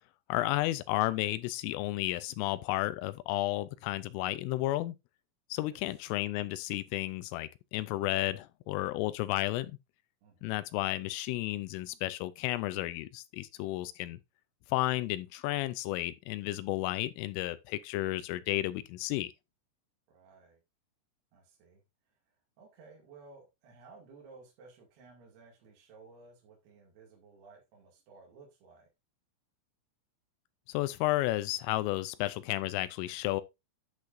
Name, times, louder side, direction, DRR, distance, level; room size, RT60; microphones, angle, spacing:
voice 1, 0.3-5.0 5.5-9.8 10.4-14.2 14.7-19.3 30.7-33.4, left 17 dB, 85° left, 3.1 m, -32 dB
voice 2, 10.2-10.6 20.1-20.6 21.3-28.9, right 4 dB, 60° right, 3.9 m, -56 dB
10.5 x 8.0 x 2.6 m
omnidirectional pair, 5.9 m